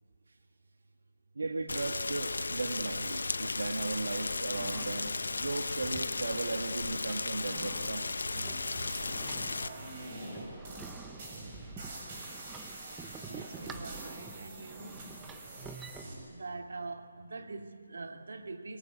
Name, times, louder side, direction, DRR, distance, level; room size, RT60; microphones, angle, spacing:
voice 1, 1.4-5.1 5.4-8.1, right 3 dB, 85° right, 1.8 m, -36 dB
Rain, 1.7-9.7, left 3 dB, 85° left, 0.8 m, -35 dB
sound 1, 4.5-16.0, right 5 dB, 5° right, 0.7 m, -50 dB
sound 2, 8.2-16.1, right 2 dB, 30° right, 6.2 m, -45 dB
voice 2, 13.2-15.1 16.3-18.8, right 3 dB, 65° right, 2.3 m, -43 dB
29.5 x 22.5 x 8.2 m
hypercardioid pair, 170°, 0 cm